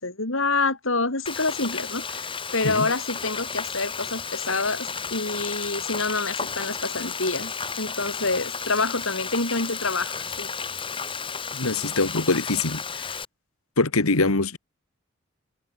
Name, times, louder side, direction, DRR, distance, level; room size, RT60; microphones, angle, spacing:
voice 1, 0.0-7.5 7.8-10.5, left 3 dB, 65° left, 3.9 m, -27 dB
Frying (food), 1.3-13.3, left 5 dB, 25° left, 6.1 m, -33 dB
voice 2, 11.5-13.2 13.8-14.6, left 3 dB, 85° left, 1.9 m, -24 dB
head